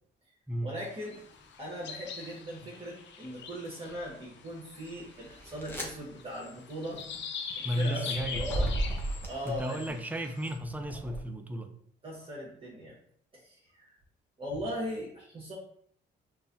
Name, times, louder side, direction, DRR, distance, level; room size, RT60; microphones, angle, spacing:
voice 1, 0.6-1.2 1.6-7.0 7.6-8.7 9.3-10.0 12.0-12.9 13.3-13.9 14.4-15.5, equal, 25° right, -5 dB, 1.3 m, -39 dB
sound 1, 0.8-10.6, left 6 dB, 65° left, 0.6 m, -44 dB
sound 2, 1.2-1.5 2.1-2.9 3.5-9.9 10.5-11.2, right 1 dB, 10° left, 1.0 m, -37 dB
voice 2, 7.6-8.7 9.5-11.7, equal, 10° right, 6 dB, 0.5 m, -34 dB
5.2 x 2.6 x 2.6 m, 0.65 s
cardioid pair, 90°, 20 cm